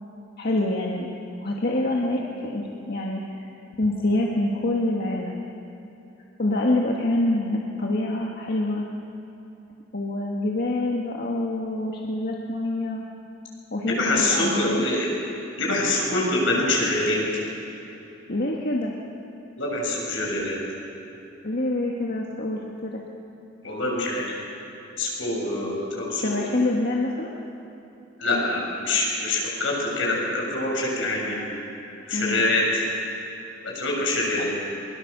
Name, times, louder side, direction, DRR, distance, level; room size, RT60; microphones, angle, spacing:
voice 1, 0.4-1.1 1.4-3.5 3.8-5.4 6.4-8.9 9.9-13.1 13.7-14.9 18.3-18.9 21.4-23.0 26.1-27.3 32.1-32.4 34.4-34.5, left 2 dB, 55° left, -1 dB, 1.6 m, -26 dB
voice 2, 13.9-15.0 15.6-17.2 19.6-20.6 23.6-24.4 25.0-26.4 28.2-31.4 32.1-32.8 33.6-34.5, left 2 dB, 75° left, -2 dB, 6.8 m, -25 dB
22.5 x 22.5 x 6.8 m, 2.9 s
head